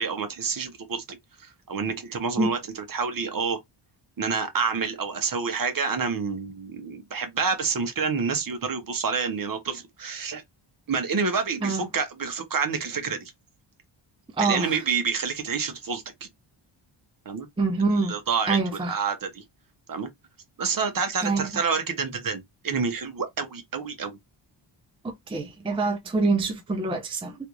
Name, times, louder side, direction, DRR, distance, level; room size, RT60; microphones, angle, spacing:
voice 1, 0.0-3.6 4.2-10.4 10.9-13.3 14.4-16.3 17.3-17.5 17.9-19.4 19.9-20.1 20.6-24.2, right 5 dB, 40° right, 0.9 m, -28 dB
voice 2, 14.4-14.7 17.6-18.1 18.5-18.9 21.2-21.5 25.0-27.4, right 3 dB, 10° right, 0.5 m, -25 dB
3.3 x 2.5 x 3.0 m
wide cardioid pair, 130°, 49 cm